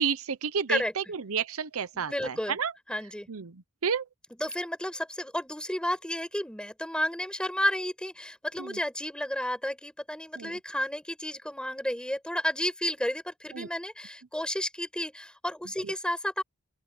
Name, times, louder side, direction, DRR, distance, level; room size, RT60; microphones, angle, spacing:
voice 1, 0.0-0.8 1.3-2.7 3.3-3.4 3.8-4.0 10.4-10.5 13.6-13.7, right 6 dB, 70° right, 0.8 m, -30 dB
voice 2, 0.7-1.1 1.9-2.6 2.9-3.3 4.3-16.4, left 1 dB, 5° left, 5.8 m, -32 dB
open air
head